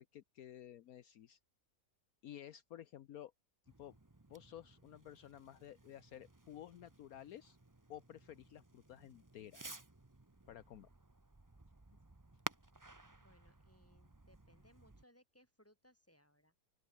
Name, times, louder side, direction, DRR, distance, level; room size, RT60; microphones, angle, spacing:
voice 1, 0.0-1.4 2.2-3.3 3.8-3.9 4.3-7.6 7.9-9.8 10.5-10.9, left 11 dB, 70° left, 1.2 m, -53 dB
Fireworks, 3.6-15.0, right 2 dB, 15° right, 1.1 m, -54 dB
voice 2, 13.2-16.5, equal, 10° left, 5.6 m, -68 dB
open air
omnidirectional pair, 1.7 m